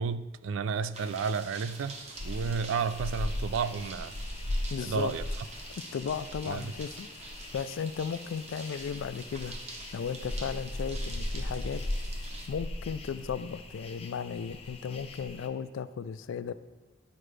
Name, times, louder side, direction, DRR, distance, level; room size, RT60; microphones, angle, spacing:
voice 1, 0.0-4.1 4.8-5.3 6.5-6.7, right 5 dB, 75° right, 0.3 m, -32 dB
sound 1, 0.9-12.5, right 3 dB, 30° right, 0.8 m, -46 dB
sound 2, 2.2-15.5, left 1 dB, 30° left, 0.6 m, -38 dB
voice 2, 4.7-5.1 5.9-7.1 7.5-9.6 9.9-11.8 12.2-16.5, left 6 dB, 75° left, 0.3 m, -35 dB
11.0 x 4.9 x 3.3 m
head